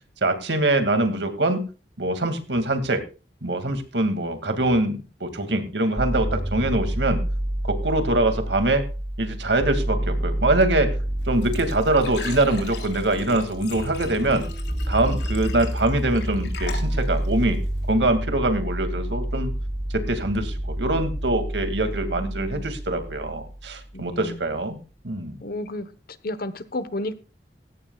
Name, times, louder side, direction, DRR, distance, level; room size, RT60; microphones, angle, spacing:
voice 1, 0.2-1.6 2.0-3.0 3.4-7.2 7.6-8.8 9.2-10.9 11.3-14.4 14.9-17.6 17.9-19.5 19.9-24.8 25.0-25.4, right 2 dB, 90° right, 2.3 m, -23 dB
sound 1, 6.0-23.9, right 1 dB, 10° right, 0.7 m, -29 dB
Glass / Trickle dribble / Fill (with liquid), 11.2-17.9, left 4 dB, 75° left, 3.3 m, -40 dB
voice 2, 22.0-22.6 23.9-24.4 25.4-25.9 26.2-27.2, left 1 dB, 60° left, 1.1 m, -32 dB
17.5 x 16.0 x 2.4 m
head